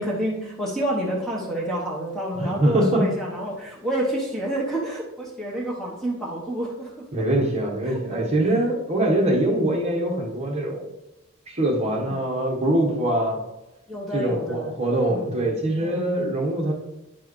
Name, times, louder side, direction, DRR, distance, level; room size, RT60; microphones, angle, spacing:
voice 1, 0.0-7.1 7.9-8.2 9.4-9.6 11.8-12.3 13.9-14.7 15.1-15.4 15.8-16.2, right 1 dB, ahead, -4 dB, 1.0 m, -29 dB
voice 2, 2.4-3.1 7.1-10.9 11.5-13.4 14.1-16.7, right 1 dB, 30° right, -1 dB, 1.3 m, -23 dB
9.6 x 4.6 x 3.1 m, 0.96 s
head